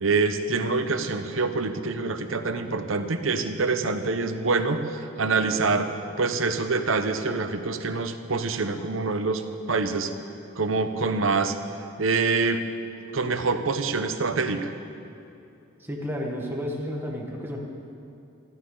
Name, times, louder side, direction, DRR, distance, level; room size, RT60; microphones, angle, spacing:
voice 1, 0.0-5.9 6.2-9.4 9.7-10.1 10.6-11.6 12.0-12.6 13.1-14.7, right 4 dB, 80° right, 8 dB, 0.9 m, -25 dB
voice 2, 15.8-17.6, equal, 10° right, -1 dB, 1.5 m, -31 dB
19.5 x 14.0 x 3.9 m, 2.6 s
head